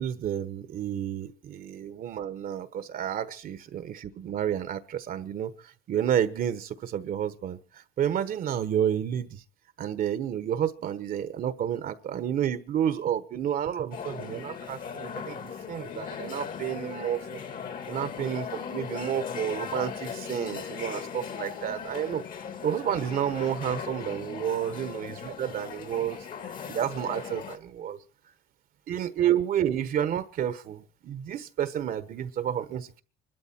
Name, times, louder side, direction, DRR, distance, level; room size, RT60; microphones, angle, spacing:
voice 1, 0.0-9.4 9.8-17.4 17.9-22.2 22.6-26.3 26.7-28.0 28.9-33.0, right 9 dB, 60° right, 1.2 m, -30 dB
sound 1, 13.9-27.6, left 7 dB, 55° left, 1.9 m, -38 dB
24.0 x 12.5 x 4.4 m
cardioid pair, 110°, 17 cm